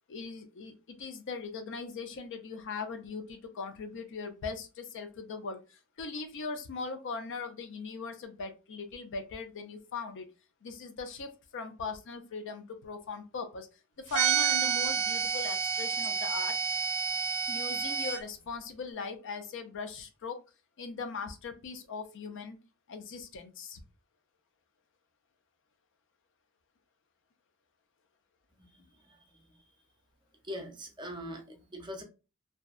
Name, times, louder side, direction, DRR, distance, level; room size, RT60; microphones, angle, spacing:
voice 1, 0.1-0.7 1.0-10.3 10.6-13.7 14.0-16.6 17.5-20.4 20.8-22.6 22.9-23.8, left 4 dB, 60° left, 7 dB, 0.4 m, -40 dB
sound 1, 14.1-18.2, right 7 dB, 85° right, 0.5 m, -29 dB
voice 2, 28.5-29.6 30.4-32.0, equal, 20° right, 3 dB, 0.5 m, -43 dB
2.6 x 2.1 x 2.3 m, 0.30 s
head